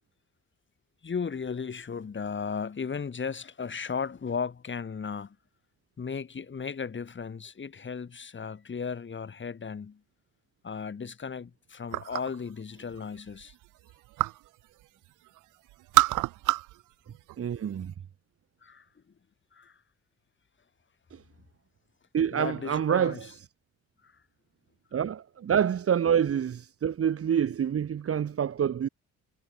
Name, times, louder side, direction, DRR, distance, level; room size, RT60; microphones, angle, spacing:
voice 1, 1.0-5.4 6.0-10.0 10.6-13.5 18.6-18.9 19.5-19.7 22.3-23.3 24.0-24.1, left 6 dB, 40° left, 6.1 m, -35 dB
sound 1, 11.9-12.4 12.8-14.5 14.8-15.4 15.7-16.8 17.1-17.9, right 19 dB, 85° right, 0.6 m, -27 dB
voice 2, 17.4-17.9 21.1-21.2 22.1-23.3 24.9-28.9, right 8 dB, 50° right, 1.6 m, -27 dB
cardioid pair, 90°, 30 cm